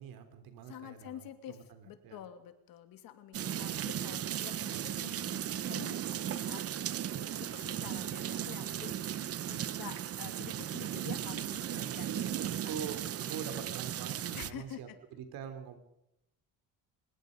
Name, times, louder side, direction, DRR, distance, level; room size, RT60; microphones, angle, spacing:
voice 1, 0.0-2.2 7.8-8.0 8.3-8.4 11.7-12.0 12.5-15.8, right 7 dB, 85° right, 8 dB, 3.4 m, -45 dB
voice 2, 0.7-1.6 1.8-6.0 6.3-6.8 7.1-11.6 12.0-13.0 14.3-15.0, left 11 dB, 80° left, 8 dB, 2.6 m, -48 dB
sound 1, 3.3-14.5, right 10 dB, 45° right, 0.8 m, -36 dB
24.5 x 20.5 x 5.3 m, 0.82 s
cardioid pair, 145°, 35 cm